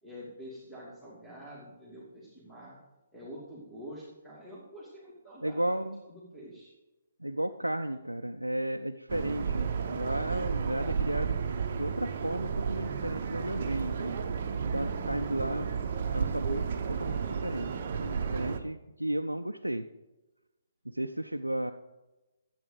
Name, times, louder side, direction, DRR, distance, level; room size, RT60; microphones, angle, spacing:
voice 1, 0.0-2.8 3.1-5.7 6.1-6.7, equal, 5° left, -8 dB, 2.8 m, -47 dB
voice 2, 5.4-6.0 7.2-11.3 11.7-14.1 14.7-15.7 16.1-19.9 20.8-21.7, right 1 dB, 85° right, 5 dB, 0.5 m, -34 dB
sound 1, 9.1-18.6, right 6 dB, 40° right, 0.9 m, -32 dB
12.5 x 8.7 x 5.0 m, 1.0 s
figure-of-eight pair, 130°, 0 cm